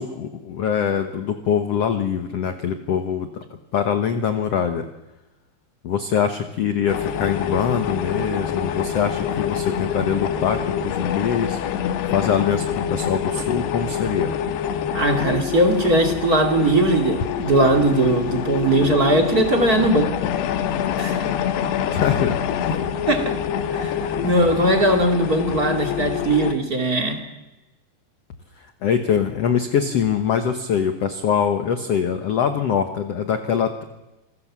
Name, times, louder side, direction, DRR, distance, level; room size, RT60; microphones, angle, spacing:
voice 1, 0.0-3.3 3.7-4.9 5.8-11.6 12.1-14.3 21.9-22.4 22.6-22.8 28.8-33.8, left 7 dB, 70° left, 7 dB, 1.5 m, -23 dB
sound 1, 6.9-26.5, left 9 dB, 90° left, 3.4 m, -26 dB
voice 2, 14.9-20.1 21.0-21.3 23.1-23.3 23.7-27.2, right 1 dB, 30° right, 4 dB, 2.3 m, -19 dB
27.5 x 21.0 x 7.4 m, 1.0 s
omnidirectional pair, 4.8 m